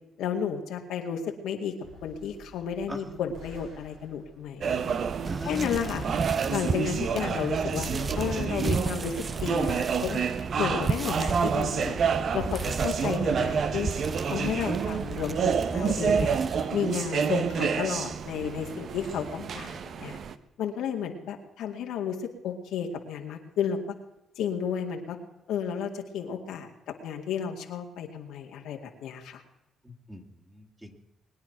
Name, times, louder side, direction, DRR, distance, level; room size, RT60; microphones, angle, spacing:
voice 1, 0.2-1.7 2.0-4.7 5.4-6.1 6.5-10.2 10.6-12.0 12.3-13.9 14.2-16.3 16.7-20.2 20.6-23.8 24.4-25.2 25.5-26.7 27.0-29.4, left 7 dB, 85° left, 2 dB, 2.2 m, -32 dB
sound 1, 1.8-14.2, right 1 dB, 75° right, 5.1 m, -46 dB
voice 2, 2.9-3.2 5.3-6.0 13.3-13.4 29.8-31.0, left 1 dB, 15° right, 1 dB, 2.5 m, -41 dB
sound 2, 4.6-20.3, right 6 dB, 55° right, 0.9 m, -29 dB
sound 3, 5.2-16.6, right 4 dB, 35° right, 0.7 m, -34 dB
21.5 x 9.8 x 6.0 m, 0.94 s
cardioid pair, 90°, 0 cm